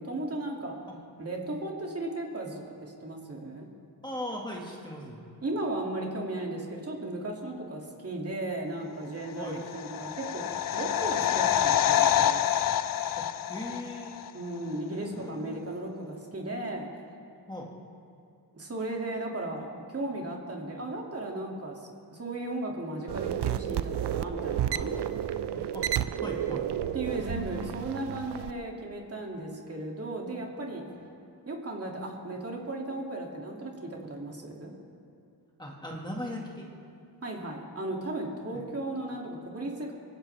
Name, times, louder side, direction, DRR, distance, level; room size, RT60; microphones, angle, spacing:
voice 1, 0.0-0.7 1.2-3.7 5.4-10.5 10.7-12.4 14.3-16.9 18.5-21.8 22.1-24.9 26.9-30.8 31.5-34.8 37.2-39.9, right 2 dB, 35° right, -1 dB, 2.5 m, -36 dB
voice 2, 0.9-1.6 4.0-5.2 9.3-9.6 13.2-14.2 14.9-15.7 17.5-17.7 25.5-26.7 30.9-31.3 35.6-36.7 38.5-38.6, left 1 dB, 10° left, -2 dB, 1.9 m, -40 dB
sound 1, 9.4-14.3 14.6-14.7, left 10 dB, 55° left, 0.6 m, -27 dB
sound 2, 23.1-28.5, right 10 dB, 80° right, 0.6 m, -31 dB
23.5 x 16.0 x 3.4 m, 2.5 s
wide cardioid pair, 120°, 40 cm